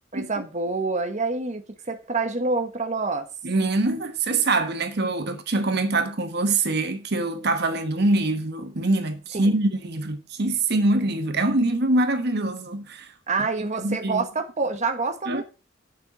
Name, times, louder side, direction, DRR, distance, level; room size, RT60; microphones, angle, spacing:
voice 1, 0.1-3.3 9.4-9.5 13.3-15.4, right 3 dB, 35° right, 1.2 m, -27 dB
voice 2, 3.4-13.1 13.8-14.3 15.3-15.4, right 2 dB, 55° right, 1.2 m, -24 dB
9.1 x 7.0 x 4.9 m
head